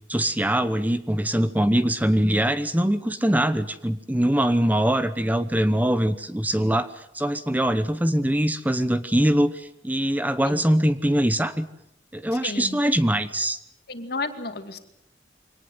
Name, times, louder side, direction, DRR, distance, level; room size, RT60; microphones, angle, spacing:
voice 1, 0.1-11.7 12.1-13.6, right 1 dB, 10° right, 12 dB, 0.9 m, -23 dB
voice 2, 10.4-10.8 12.4-12.8 13.9-14.8, left 3 dB, 60° left, 8 dB, 2.4 m, -32 dB
24.5 x 18.5 x 7.9 m, 0.79 s
head